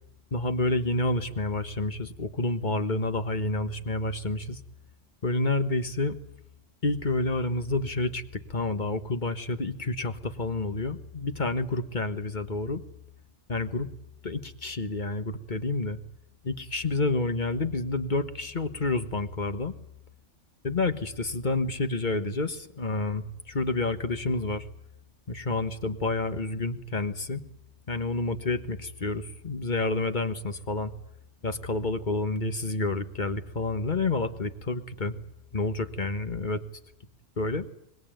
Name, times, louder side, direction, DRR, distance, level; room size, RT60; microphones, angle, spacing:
voice 1, 0.3-4.6 5.2-6.2 6.8-8.2 8.5-12.8 13.5-13.9 14.2-16.0 16.4-19.7 20.6-24.7 25.3-27.4 27.9-30.9 31.4-35.2 35.5-36.6 37.4-37.7, left 2 dB, 40° left, 9 dB, 1.5 m, -29 dB
25.0 x 21.5 x 9.2 m, 0.76 s
omnidirectional pair, 1.3 m